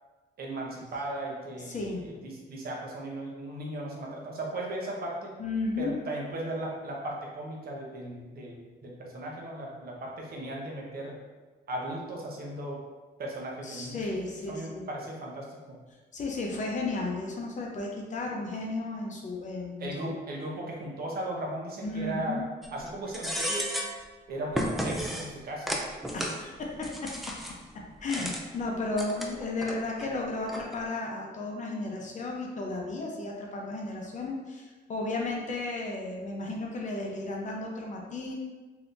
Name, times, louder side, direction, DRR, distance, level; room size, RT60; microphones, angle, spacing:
voice 1, 0.4-5.3 5.8-11.1 11.7-12.8 13.2-14.2 14.5-15.8 19.8-22.4 22.7-23.7 24.3-25.8, right 1 dB, 55° right, -2 dB, 0.8 m, -37 dB
voice 2, 1.6-2.1 5.4-5.9 13.6-14.9 16.1-19.9 21.8-22.4 26.1-27.3 27.7-38.3, left 2 dB, 45° left, -1 dB, 0.6 m, -34 dB
sound 1, 22.6-22.9 23.1-24.0 24.5-25.3 25.7-26.4 26.8-27.6 28.1-28.4 28.9-29.7 30.0-30.1 30.5-30.8, equal, ahead, 0.3 m, -33 dB
3.2 x 2.7 x 2.6 m, 1.3 s
cardioid pair, 115°, 18 cm